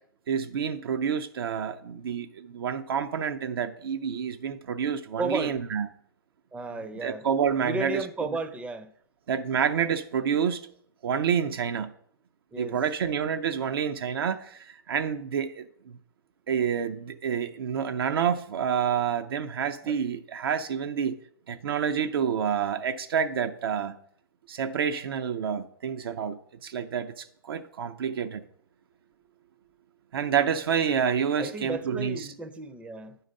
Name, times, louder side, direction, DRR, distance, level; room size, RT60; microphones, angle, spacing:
voice 1, 0.3-5.9 7.0-8.0 9.3-10.6 11.0-11.9 12.6-16.0 16.5-21.2 21.5-24.0 24.5-28.4 30.1-32.2, right 7 dB, 80° right, 0.5 m, -28 dB
voice 2, 5.2-5.6 6.5-7.3 7.6-8.9 12.5-12.8 19.8-20.0 31.4-33.2, right 2 dB, 10° right, 0.5 m, -34 dB
8.8 x 4.0 x 5.2 m
hypercardioid pair, 130°, 12 cm